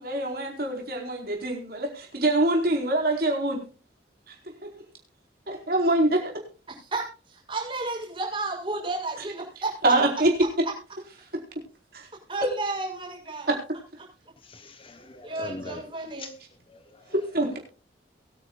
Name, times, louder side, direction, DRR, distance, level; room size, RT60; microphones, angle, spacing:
voice 1, 0.0-3.6 4.3-4.4 5.5-6.3 9.8-10.3 11.9-12.1 12.4-12.5 13.5-13.6 17.1-17.5, right 1 dB, 50° right, 4.6 m, -24 dB
voice 2, 6.9-9.7 12.3-13.5 15.2-16.3, right 2 dB, 25° right, 6.5 m, -32 dB
voice 3, 14.4-15.8 16.2-16.3 16.7-17.0, left 2 dB, 30° left, 1.0 m, -41 dB
23.0 x 9.9 x 2.4 m
head